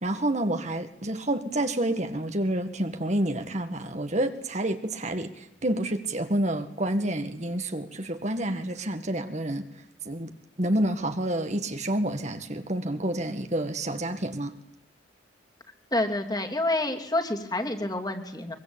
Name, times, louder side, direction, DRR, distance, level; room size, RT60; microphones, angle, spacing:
voice 1, 0.0-9.6 10.1-10.3 10.6-14.5, right 1 dB, 40° right, 7 dB, 1.9 m, -29 dB
voice 2, 15.9-18.5, left 2 dB, 20° left, 3 dB, 3.0 m, -28 dB
24.0 x 23.5 x 8.9 m, 0.78 s
head